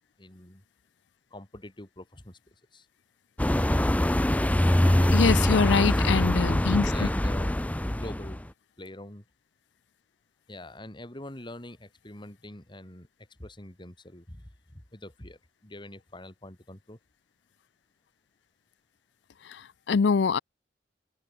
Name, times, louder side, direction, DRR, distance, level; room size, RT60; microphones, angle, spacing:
voice 1, 0.2-0.6 1.3-2.4 2.7-2.9 4.6-6.3 6.8-7.6 8.0-8.4 8.8-9.2 10.5-13.1 13.4-17.0, left 1 dB, 30° left, 2.9 m, -44 dB
sound 1, 3.4-8.4, left 1 dB, 10° left, 0.6 m, -24 dB
voice 2, 5.1-7.1 19.5-20.4, left 5 dB, 80° left, 0.5 m, -24 dB
open air
head